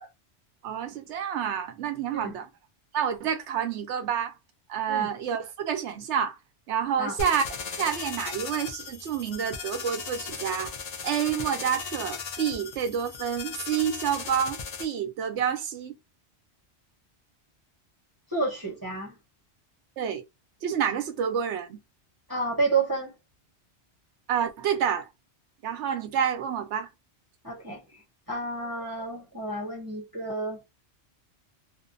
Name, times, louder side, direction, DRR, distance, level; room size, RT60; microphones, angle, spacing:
voice 1, 0.6-2.5 2.9-4.4 4.7-6.4 6.7-7.4 7.8-10.7 11.0-16.0 20.0-20.2 20.6-21.8 24.3-25.1 25.6-26.9, right 8 dB, 80° right, 0.9 m, -28 dB
sound 1, 7.2-14.8, left 5 dB, 45° left, 0.6 m, -37 dB
voice 2, 18.3-19.2 22.3-23.1 27.4-27.8 28.3-30.6, right 3 dB, 20° right, 0.8 m, -30 dB
2.6 x 2.1 x 2.5 m
omnidirectional pair, 1.2 m